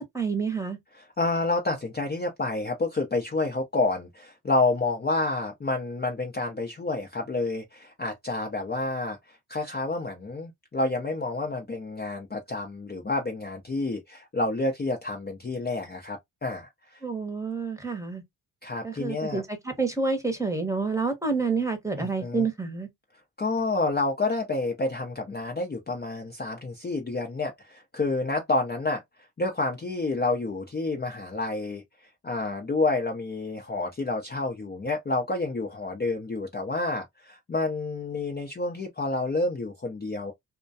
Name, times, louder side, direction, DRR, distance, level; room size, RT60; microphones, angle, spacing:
voice 1, 0.1-0.8 17.0-18.2 18.8-22.9, right 4 dB, 5° right, 0.9 m, -28 dB
voice 2, 0.9-17.0 18.6-19.4 22.0-22.5 23.4-29.0 29.4-31.8 32.2-40.3, left 2 dB, 25° left, 0.6 m, -29 dB
2.2 x 2.2 x 2.6 m
cardioid pair, 55°, 44 cm